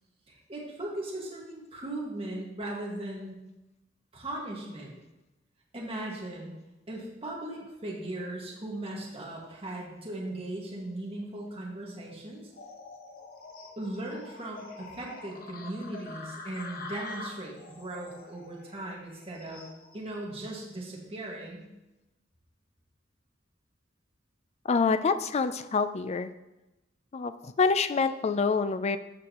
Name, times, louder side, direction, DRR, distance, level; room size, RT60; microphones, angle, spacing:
voice 1, 0.3-3.4 4.1-5.0 5.7-6.5 6.9-12.4 13.8-19.6 19.9-21.7 28.1-28.2, right 1 dB, 30° right, -3 dB, 1.8 m, -38 dB
sound 1, 12.5-20.1, left 3 dB, 50° left, 1.1 m, -45 dB
voice 2, 24.6-26.3 27.1-29.0, left 4 dB, 35° left, 11 dB, 0.4 m, -26 dB
14.0 x 5.1 x 3.0 m, 0.99 s
head